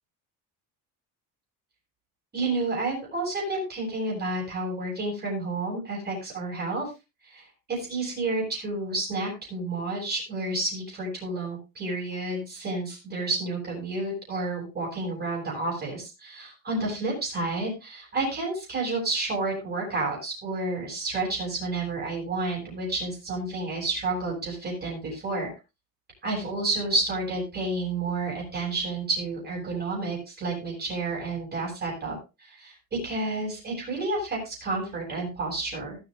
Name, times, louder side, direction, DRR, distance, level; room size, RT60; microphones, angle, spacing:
voice 1, 2.3-6.9 7.2-25.5 26.2-36.0, right 2 dB, 30° right, -4 dB, 7.6 m, -30 dB
20.0 x 8.9 x 2.7 m, 0.27 s
cardioid pair, 165°, 35 cm